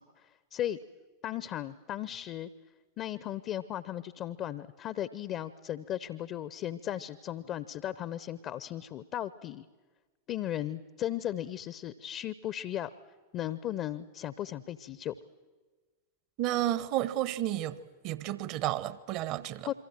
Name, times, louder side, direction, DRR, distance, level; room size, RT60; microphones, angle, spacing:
voice 1, 1.2-2.5 3.0-9.6 10.3-12.9 13.3-15.1 19.6-19.7, left 12 dB, 35° left, 0.8 m, -36 dB
voice 2, 16.4-17.8 18.0-19.7, right 13 dB, 40° right, 1.1 m, -31 dB
27.0 x 24.0 x 7.6 m
figure-of-eight pair, 90°, 0 cm